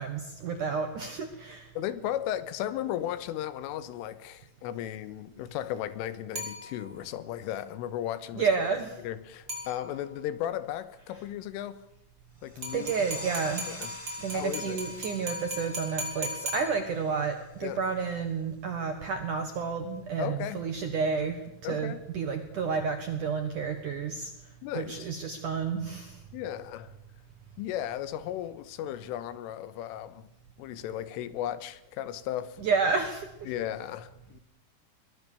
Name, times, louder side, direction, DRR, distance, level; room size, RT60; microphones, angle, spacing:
voice 1, 0.0-1.7 8.3-9.0 12.7-13.7 14.2-26.2 32.6-33.5, right 5 dB, 65° right, 2.0 m, -31 dB
voice 2, 1.8-8.5 9.0-11.8 12.4-12.9 13.8-13.9 14.3-14.8 17.6-17.8 20.2-20.6 21.6-22.0 24.6-25.1 26.3-26.9 27.6-30.3 30.6-32.6 33.5-34.4, left 11 dB, 85° left, 3.7 m, -35 dB
sound 1, 6.4-7.2 9.5-10.2 12.6-17.2, equal, 25° right, 6.3 m, -38 dB
sound 2, 12.4-17.7, left 1 dB, 15° left, 1.0 m, -48 dB
22.0 x 22.0 x 6.9 m
omnidirectional pair, 5.7 m